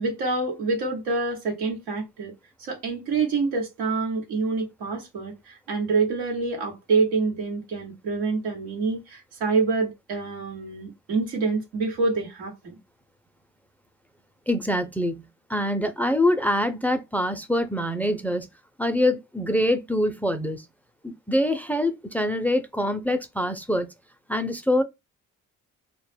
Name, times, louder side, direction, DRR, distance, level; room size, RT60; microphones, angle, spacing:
voice 1, 0.0-2.3 2.6-12.8, right 4 dB, 90° right, 1.1 m, -26 dB
voice 2, 14.5-15.2 15.5-18.5 18.8-20.6 21.0-23.9 24.3-24.8, left 1 dB, 5° left, 0.5 m, -24 dB
2.2 x 2.0 x 3.2 m
supercardioid pair, 60°, 36 cm